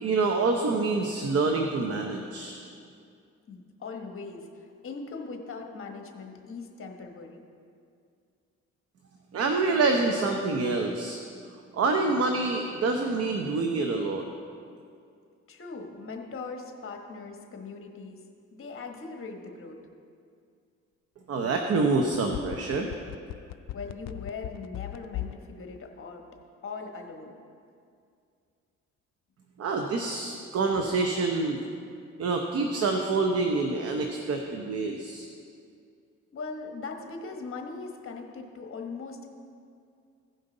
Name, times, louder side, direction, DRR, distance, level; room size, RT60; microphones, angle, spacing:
voice 1, 0.0-2.6 9.3-11.2 11.7-14.3 21.3-22.9 29.6-31.6 32.2-35.3, right 3 dB, 50° right, 3 dB, 0.8 m, -26 dB
voice 2, 3.5-7.4 15.5-18.2 18.5-19.8 23.7-26.2 26.6-27.3 36.3-39.3, left 4 dB, 45° left, 3 dB, 1.2 m, -40 dB
sound 1, 22.0-25.4 25.7-25.8, left 14 dB, 65° left, 0.4 m, -36 dB
16.0 x 5.4 x 3.9 m, 2.3 s
cardioid pair, 90°, 30 cm